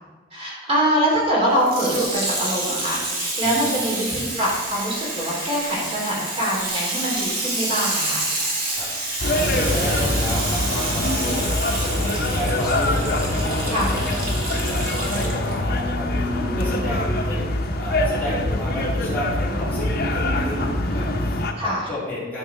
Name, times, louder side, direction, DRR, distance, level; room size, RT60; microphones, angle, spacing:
voice 1, 0.3-8.3 11.0-11.4 13.7-13.9 16.2-16.6 20.0-20.4 21.6-21.9, equal, 30° right, -5 dB, 2.8 m, -24 dB
Water tap faucet / Sink (filling or washing), 1.6-15.6 16.3-16.4, right 2 dB, 50° right, 2.0 m, -28 dB
voice 2, 3.4-3.7 8.8-8.9 9.3-11.5 11.8-17.5 17.8-22.4, left 1 dB, 10° left, -9 dB, 2.6 m, -32 dB
sound 1, 9.2-21.5, left 1 dB, 55° left, 0.9 m, -24 dB
11.5 x 4.7 x 4.7 m, 1.4 s
head